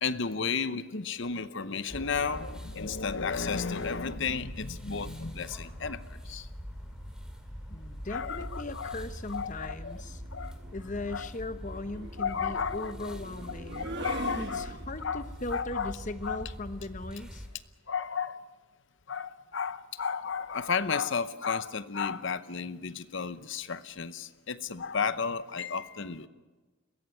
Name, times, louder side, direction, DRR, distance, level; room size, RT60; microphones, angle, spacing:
voice 1, 0.0-6.5 8.1-9.0 9.3-10.0 10.3-10.5 11.1-11.3 12.2-13.2 13.7-14.7 15.0-15.2 15.5-15.9 16.2-16.4 17.9-18.4 19.1-26.3, left 5 dB, 60° left, 13 dB, 0.8 m, -33 dB
sound 1, 1.9-17.5, equal, 5° right, 2.3 m, -43 dB
voice 2, 7.7-10.2 10.7-13.9 14.4-17.5, left 2 dB, 35° left, 10 dB, 1.0 m, -39 dB
Suspense ending in disappointment, 8.4-8.6 10.0-15.2, right 2 dB, 55° right, 1.4 m, -43 dB
22.5 x 16.0 x 9.8 m, 1.3 s
head